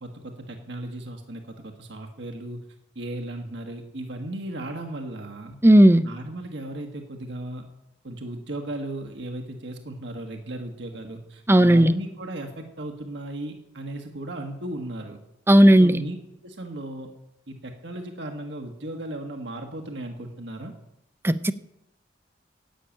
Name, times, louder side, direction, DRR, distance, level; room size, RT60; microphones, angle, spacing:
voice 1, 0.0-2.6 2.9-5.6 6.0-7.6 8.0-15.2 15.8-16.2 16.4-17.1 17.5-20.7, right 1 dB, 70° right, 4 dB, 1.5 m, -36 dB
voice 2, 5.6-6.0 11.5-12.0 15.5-16.0 21.2-21.5, right 1 dB, 15° right, 13 dB, 0.5 m, -14 dB
11.5 x 8.6 x 8.9 m, 0.86 s
head